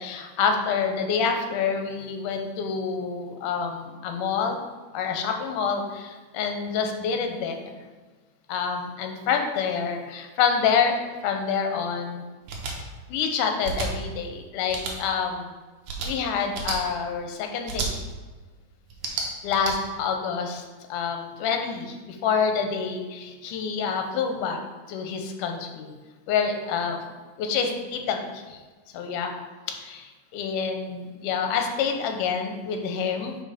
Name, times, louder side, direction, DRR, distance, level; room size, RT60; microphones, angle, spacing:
voice 1, 0.0-4.6 4.9-7.8 8.5-12.3 13.1-15.5 16.0-17.9 19.1-20.6 20.9-24.6 24.9-25.9 26.3-27.0 27.4-28.6 28.9-29.3 29.7-33.4, left 6 dB, 85° left, 4 dB, 2.3 m, -27 dB
sound 1, 12.5-12.7 13.6-13.9 14.7-14.9 15.8-16.1 16.5-16.8 17.7-17.9 18.9-19.7, right 4 dB, 80° right, 2.6 m, -30 dB
5.5 x 5.3 x 5.0 m, 1.3 s
omnidirectional pair, 3.7 m